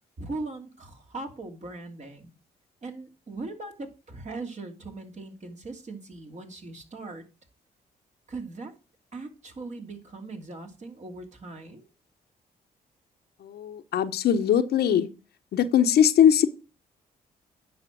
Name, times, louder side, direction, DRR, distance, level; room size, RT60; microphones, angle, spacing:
voice 1, 0.2-2.3 2.8-7.2 8.3-8.7 9.1-11.9, right 3 dB, 45° right, 3 dB, 2.9 m, -39 dB
voice 2, 13.4-15.1 15.5-16.5, left 9 dB, 70° left, 8 dB, 1.1 m, -21 dB
9.4 x 6.1 x 6.1 m, 0.31 s
supercardioid pair, 60°, 17 cm